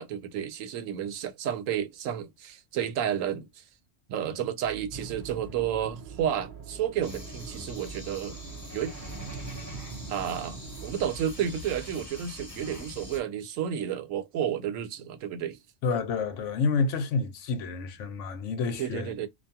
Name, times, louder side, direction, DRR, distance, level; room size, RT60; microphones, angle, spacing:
voice 1, 0.0-3.6 4.1-8.4 8.7-9.0 10.1-15.6 18.8-19.3, right 9 dB, 80° right, 1.0 m, -31 dB
sound 1, 4.6-12.0, right 9 dB, 45° left, 0.5 m, -48 dB
sound 2, 4.9-11.0, right 4 dB, 55° right, 0.6 m, -44 dB
sound 3, 7.0-13.2, left 2 dB, 15° left, 0.8 m, -44 dB
voice 2, 15.8-19.1, left 4 dB, 75° left, 0.9 m, -29 dB
2.4 x 2.3 x 2.6 m
omnidirectional pair, 1.3 m